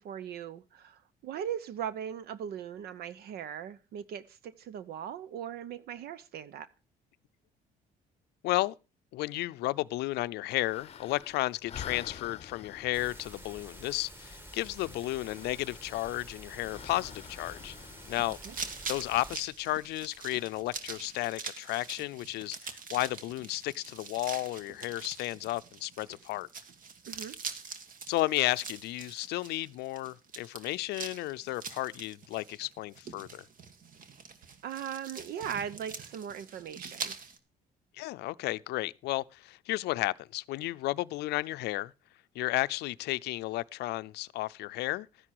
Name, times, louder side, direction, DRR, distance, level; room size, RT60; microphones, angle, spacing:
voice 1, 0.0-6.7 18.5-18.6 27.1-27.3 34.6-37.1, right 9 dB, 70° right, 0.8 m, -39 dB
voice 2, 8.4-8.7 9.1-17.8 18.1-18.4 18.9-26.5 28.1-33.5 37.9-41.9 42.3-45.1, left 18 dB, 80° left, 0.5 m, -33 dB
sound 1, 10.5-21.1, left 8 dB, 40° left, 0.7 m, -50 dB
sound 2, 12.9-19.4, equal, 15° right, 2.0 m, -49 dB
sound 3, 18.0-37.4, right 5 dB, 55° right, 1.8 m, -44 dB
13.0 x 10.0 x 4.7 m
cardioid pair, 110°, 17 cm